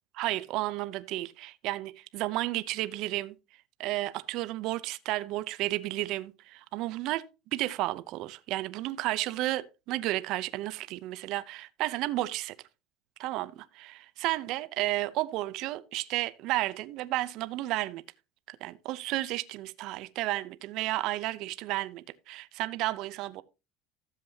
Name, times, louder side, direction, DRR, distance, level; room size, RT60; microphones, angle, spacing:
voice 1, 0.1-12.6 13.2-18.0 18.5-23.4, right 17 dB, 55° right, 0.7 m, -32 dB
13.5 x 7.5 x 2.8 m
supercardioid pair, 135°, 0 cm